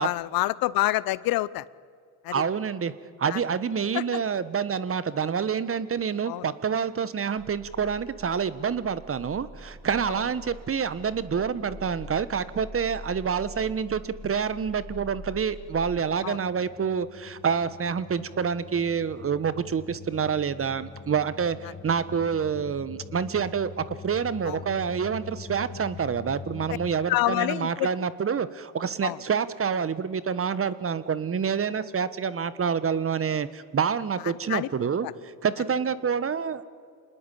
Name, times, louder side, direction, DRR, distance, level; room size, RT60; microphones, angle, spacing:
voice 1, 0.0-1.6 2.2-2.4 3.3-3.4 3.9-4.0 6.3-6.4 10.1-10.2 16.2-16.4 24.5-24.6 27.1-27.9 29.0-29.2 34.5-34.7 35.0-35.1, left 16 dB, 50° left, 20 dB, 0.7 m, -27 dB
voice 2, 2.3-2.9 3.2-36.6, right 6 dB, 30° right, 15 dB, 1.3 m, -27 dB
sound 1, 7.4-26.9, left 3 dB, 20° left, 2.6 m, -44 dB
26.5 x 19.5 x 8.5 m, 2.3 s
hypercardioid pair, 65°, 46 cm